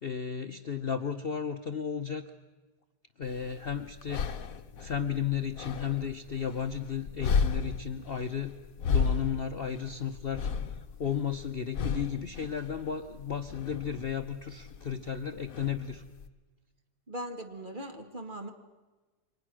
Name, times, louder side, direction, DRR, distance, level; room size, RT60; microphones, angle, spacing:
voice 1, 0.0-2.3 3.2-4.4 4.8-8.6 8.8-10.5 11.0-16.0, left 7 dB, 45° left, 6 dB, 0.9 m, -34 dB
sound 1, 3.2-16.3, left 5 dB, 60° left, 1.3 m, -35 dB
voice 2, 17.1-18.5, right 1 dB, 30° right, 5 dB, 2.0 m, -39 dB
29.0 x 24.0 x 6.2 m, 1.2 s
omnidirectional pair, 1.8 m